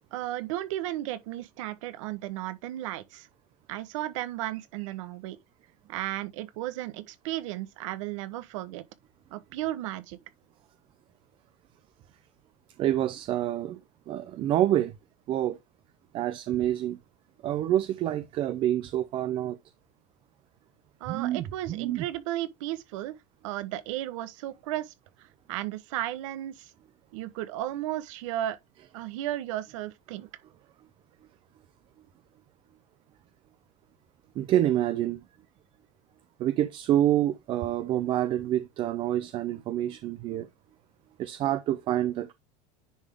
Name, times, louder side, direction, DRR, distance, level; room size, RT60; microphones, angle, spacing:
voice 1, 0.1-3.3 3.7-5.4 5.9-8.8 9.3-10.2 21.0-23.1 23.4-26.7 27.1-28.6 28.9-30.3, right 14 dB, 75° right, 1.1 m, -34 dB
voice 2, 12.8-13.8 14.1-14.9 15.3-15.6 16.1-17.0 17.4-19.6 21.1-22.0 34.4-35.2 36.4-40.5 41.2-42.3, right 12 dB, 30° right, 0.5 m, -27 dB
10.0 x 3.7 x 3.5 m
supercardioid pair, 160°, 16 cm